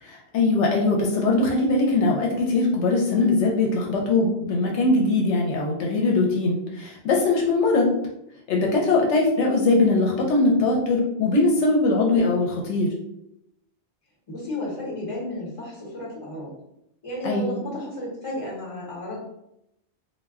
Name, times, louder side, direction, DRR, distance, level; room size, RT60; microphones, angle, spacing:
voice 1, 0.0-7.9 8.5-12.9 17.2-17.6, left 3 dB, 80° left, -1 dB, 0.9 m, -21 dB
voice 2, 14.3-16.5 17.0-19.2, left 1 dB, 30° left, -5 dB, 1.0 m, -33 dB
2.2 x 2.2 x 3.4 m, 0.81 s
omnidirectional pair, 1.2 m